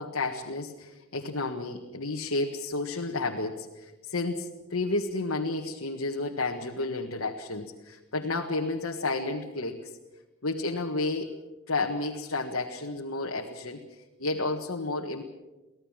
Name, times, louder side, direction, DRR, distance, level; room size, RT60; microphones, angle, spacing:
voice 1, 0.0-9.9 10.4-11.3 11.7-13.8 14.2-15.2, left 2 dB, 70° left, 1 dB, 1.7 m, -31 dB
25.0 x 17.0 x 7.5 m, 1.1 s
head